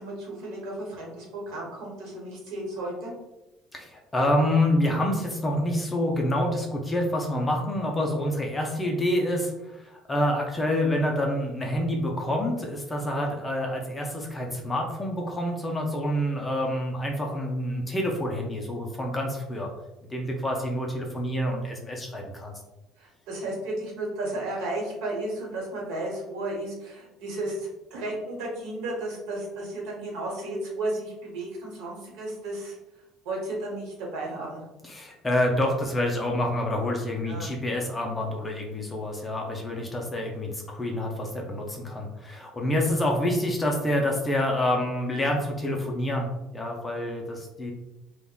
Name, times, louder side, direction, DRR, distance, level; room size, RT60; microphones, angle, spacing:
voice 1, 0.0-3.1 23.0-32.7 33.2-34.6 37.2-37.5, right 2 dB, 70° right, -2 dB, 1.0 m, -33 dB
voice 2, 3.7-19.7 20.1-22.6 34.8-47.7, left 1 dB, 10° left, 1 dB, 0.4 m, -27 dB
3.4 x 2.1 x 2.2 m, 0.99 s
cardioid pair, 175°, 0 cm